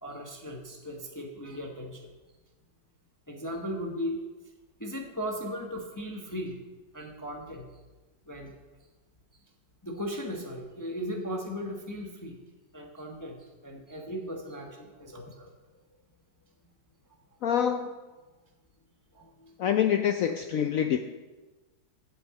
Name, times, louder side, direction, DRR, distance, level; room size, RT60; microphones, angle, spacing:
voice 1, 0.0-2.0 3.3-4.2 4.8-6.6 6.9-7.7 8.3-8.5 9.8-12.4 12.7-15.5 19.1-19.5, equal, 15° left, 1 dB, 0.8 m, -37 dB
voice 2, 17.4-17.9 19.6-21.0, left 9 dB, 75° left, 7 dB, 0.7 m, -26 dB
8.3 x 6.3 x 8.1 m, 1.2 s
omnidirectional pair, 1.9 m